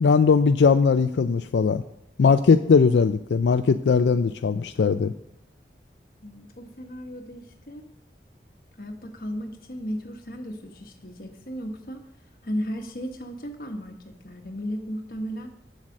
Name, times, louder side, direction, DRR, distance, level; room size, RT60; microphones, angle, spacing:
voice 1, 0.0-1.8 2.2-5.1, left 5 dB, 85° left, 9 dB, 0.4 m, -19 dB
voice 2, 6.2-7.9 8.8-12.0 12.4-15.5, equal, 55° left, 3 dB, 1.3 m, -35 dB
7.7 x 7.3 x 6.4 m, 0.78 s
head